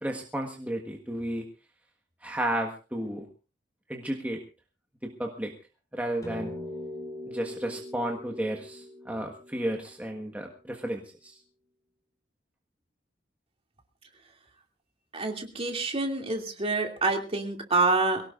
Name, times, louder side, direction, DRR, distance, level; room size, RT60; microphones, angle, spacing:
voice 1, 0.0-1.4 2.2-3.3 3.9-4.4 5.0-5.5 5.9-6.5 7.3-11.4, right 1 dB, 10° right, 1 dB, 1.5 m, -33 dB
sound 1, 6.2-10.8, left 1 dB, 20° left, 4.1 m, -42 dB
voice 2, 15.1-18.2, right 3 dB, 35° right, 3 dB, 2.7 m, -27 dB
23.0 x 17.5 x 2.5 m, 0.33 s
head